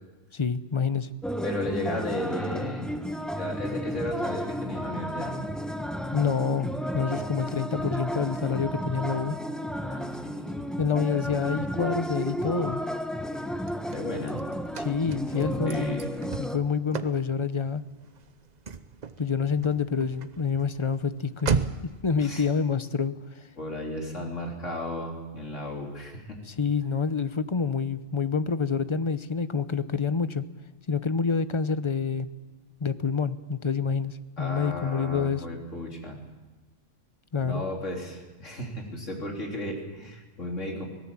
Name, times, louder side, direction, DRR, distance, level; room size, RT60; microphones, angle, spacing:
voice 1, 0.3-1.1 6.1-9.4 10.8-12.8 14.8-16.0 16.4-17.8 19.2-23.2 26.5-30.4 30.9-32.3 32.8-35.4 37.3-37.6, left 5 dB, 30° left, 13 dB, 0.7 m, -27 dB
sound 1, 1.2-16.6, equal, ahead, 0.9 m, -33 dB
voice 2, 1.4-2.9 3.3-5.4 9.8-10.7 13.9-14.4 15.3-16.1 22.2-22.4 23.6-26.4 34.4-36.2 37.4-40.9, left 1 dB, 85° left, 0 dB, 3.9 m, -34 dB
Car / Slam, 13.3-22.0, right 5 dB, 40° right, 0.9 m, -36 dB
24.0 x 17.5 x 7.4 m, 1.2 s
omnidirectional pair, 1.2 m